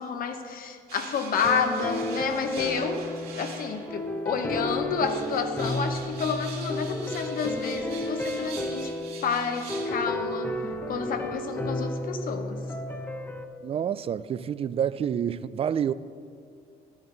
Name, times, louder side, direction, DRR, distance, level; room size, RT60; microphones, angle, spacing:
voice 1, 0.0-3.1 3.3-8.9 9.2-10.5 10.9-12.6, left 6 dB, 55° left, 1.1 m, -30 dB
sound 1, 0.9-4.2 4.8-9.9, right 5 dB, 65° right, 2.3 m, -43 dB
sound 2, 1.4-13.4, left 1 dB, 10° left, 0.8 m, -32 dB
voice 2, 13.6-15.9, right 8 dB, 35° right, 0.4 m, -28 dB
14.0 x 10.0 x 4.0 m
cardioid pair, 110°, 17 cm